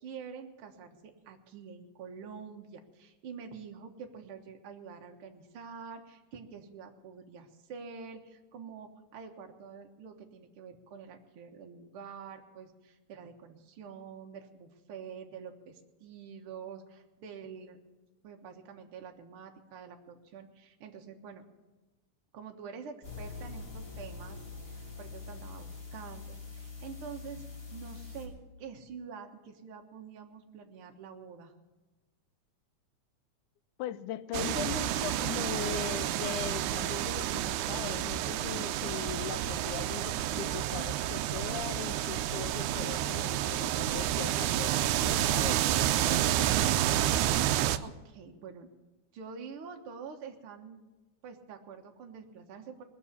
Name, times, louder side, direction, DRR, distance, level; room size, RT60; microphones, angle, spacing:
voice 1, 0.0-17.8 18.2-21.5 22.3-24.4 24.7-27.5 27.7-31.5 47.8-48.7 49.1-50.8 51.2-52.8, right 6 dB, 55° right, 3 dB, 1.9 m, -47 dB
sound 1, 23.0-28.3, left 4 dB, 30° left, 3.2 m, -44 dB
voice 2, 33.8-46.5, left 12 dB, 90° left, 15 dB, 2.1 m, -40 dB
sound 2, 34.3-47.8, right 12 dB, 85° right, 2.0 m, -30 dB
20.0 x 6.9 x 8.3 m, 1.2 s
omnidirectional pair, 3.4 m